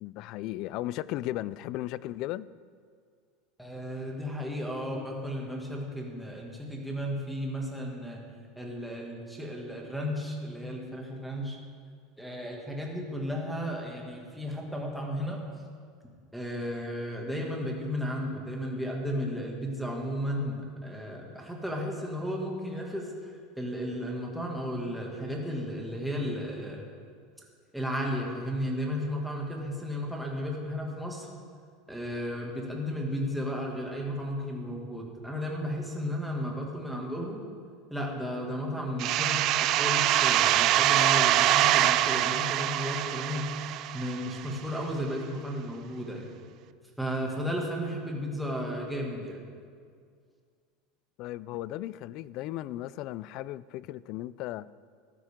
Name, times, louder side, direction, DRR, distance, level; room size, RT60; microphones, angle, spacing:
voice 1, 0.0-2.5 51.2-54.7, left 15 dB, 50° left, 0.3 m, -36 dB
voice 2, 3.6-8.2 8.6-11.6 12.2-15.5 16.3-26.9 27.7-31.3 31.9-37.4 37.9-43.6 43.9-46.3 47.0-49.4, equal, ahead, 2.1 m, -34 dB
sound 1, 39.0-44.5, right 13 dB, 45° right, 0.4 m, -24 dB
14.5 x 12.0 x 3.7 m
supercardioid pair, 140°, 0 cm